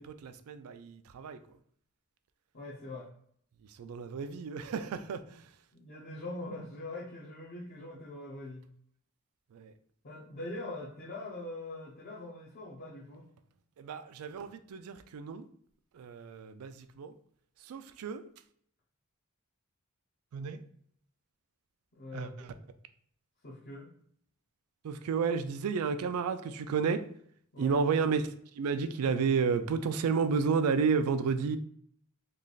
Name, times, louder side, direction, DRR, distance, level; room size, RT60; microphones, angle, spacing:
voice 1, 0.0-1.6 3.6-5.6 9.5-9.8 13.8-15.5 15.9-17.1 17.6-18.2 20.3-20.6 22.1-22.5 24.8-27.1 27.6-31.6, right 5 dB, 85° right, 11 dB, 0.4 m, -32 dB
voice 2, 2.5-3.1 5.7-8.7 10.0-13.3 21.9-22.3 23.4-23.9 27.5-27.8, left 2 dB, 45° left, -4 dB, 0.6 m, -42 dB
3.2 x 2.4 x 3.8 m, 0.64 s
head